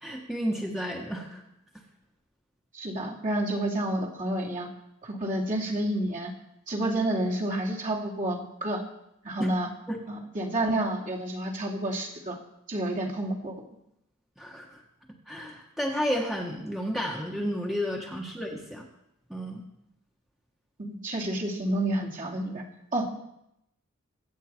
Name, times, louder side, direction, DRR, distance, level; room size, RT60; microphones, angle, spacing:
voice 1, 0.0-1.4 9.4-9.5 9.9-10.0 14.4-14.8 15.3-18.9 19.3-19.6, equal, ahead, -1 dB, 1.5 m, -32 dB
voice 2, 2.7-4.7 5.0-6.3 6.7-8.8 9.2-9.7 10.1-12.4 12.7-13.5 20.8-22.6 22.9-23.1, right 1 dB, 40° right, -2 dB, 2.5 m, -29 dB
23.0 x 8.7 x 4.5 m, 0.82 s
head